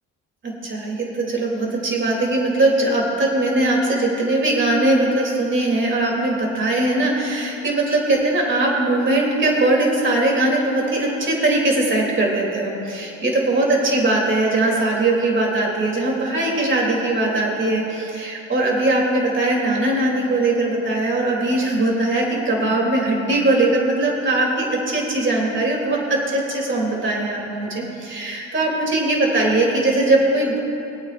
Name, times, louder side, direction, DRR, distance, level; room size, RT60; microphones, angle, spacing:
voice 1, 0.4-30.6, right 2 dB, 40° right, -2 dB, 3.0 m, -20 dB
23.0 x 8.7 x 2.5 m, 2.9 s
cardioid pair, 90°, 30 cm